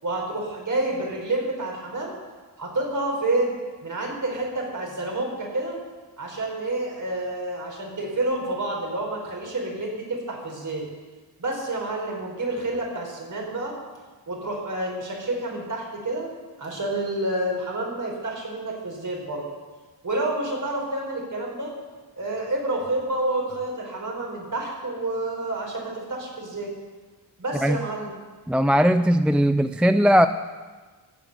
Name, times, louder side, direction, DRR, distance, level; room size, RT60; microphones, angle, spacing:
voice 1, 0.0-2.2 2.6-3.5 3.8-5.8 6.2-10.8 11.4-13.8 14.3-16.3 16.6-19.4 20.0-21.7 22.1-26.7 27.4-28.1, right 2 dB, 45° right, -1 dB, 5.1 m, -29 dB
voice 2, 28.5-30.3, equal, 5° right, 11 dB, 0.4 m, -19 dB
15.0 x 7.7 x 7.0 m, 1.4 s
cardioid pair, 60°, 41 cm